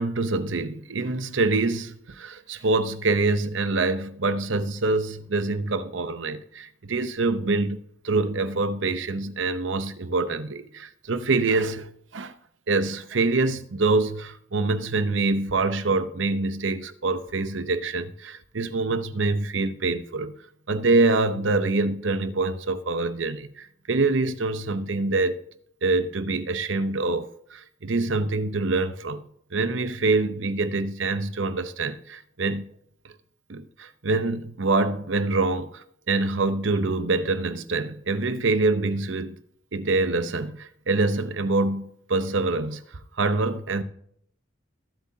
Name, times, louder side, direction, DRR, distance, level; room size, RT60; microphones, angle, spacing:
voice 1, 0.0-7.8 8.0-12.3 12.7-20.3 20.7-25.4 25.8-29.2 29.5-32.7 33.5-39.4 39.7-42.8 43.2-43.8, right 3 dB, 75° right, 0.8 m, -25 dB
21.0 x 8.3 x 2.8 m
head